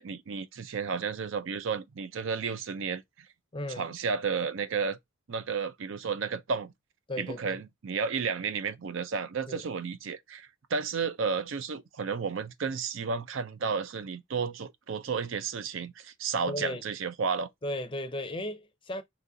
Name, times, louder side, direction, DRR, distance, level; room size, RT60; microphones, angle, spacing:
voice 1, 0.0-3.3 3.8-5.0 5.3-6.7 7.2-17.5, right 5 dB, 65° right, 0.5 m, -32 dB
voice 2, 3.5-3.9 7.1-7.6 9.5-9.6 16.5-16.8 17.6-19.0, left 1 dB, 25° left, 0.5 m, -35 dB
4.1 x 3.0 x 3.7 m
head